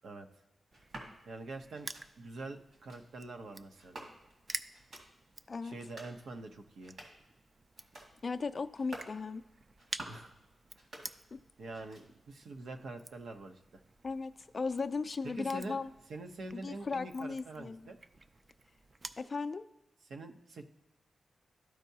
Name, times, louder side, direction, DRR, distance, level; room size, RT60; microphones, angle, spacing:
Crushing, 0.7-19.3, right 2 dB, 35° right, 0.3 m, -50 dB
sound 1, 0.7-1.1 1.7-2.1 2.7-3.0 3.8-4.4 4.7-5.1 5.7-6.2 6.7-7.3 7.7-8.1 8.7-9.2 9.7-10.3 10.7-11.4 11.7-12.3, right 1 dB, 60° right, 2.0 m, -50 dB
voice 1, 1.3-1.9 2.2-4.1 5.6-7.0 10.1-10.3 11.6-13.8 15.2-15.8 16.1-18.0 20.1-20.6, right 2 dB, 80° right, 5 dB, 0.8 m, -45 dB
voice 2, 8.2-9.4 11.3-11.4 14.0-15.9 16.5-17.8 19.2-19.6, left 4 dB, 40° left, 11 dB, 0.3 m, -36 dB
13.0 x 4.6 x 2.8 m, 0.97 s
wide cardioid pair, 100°, 0 cm